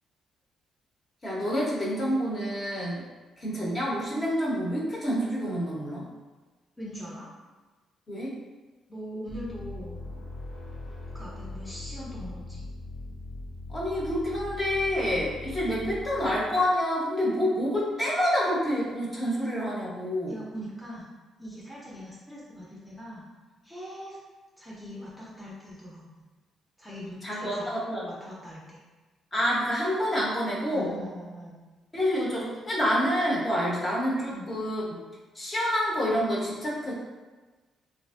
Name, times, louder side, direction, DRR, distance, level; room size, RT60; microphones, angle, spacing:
voice 1, 1.2-3.1 3.4-6.1 8.1-8.4 13.7-20.3 27.2-28.0 29.3-30.9 31.9-34.8 35.3-36.9, equal, 30° left, -5 dB, 0.9 m, -28 dB
voice 2, 6.8-7.3 8.9-10.0 11.1-12.6 20.3-21.1 21.4-23.2 23.6-24.2 24.6-26.2 26.8-28.8 30.7-31.6 34.3-34.5, equal, ahead, -7 dB, 0.7 m, -41 dB
sound 1, 9.3-16.7, left 2 dB, 60° left, 1.5 m, -40 dB
3.0 x 2.5 x 2.4 m, 1.3 s
cardioid pair, 90°, 0 cm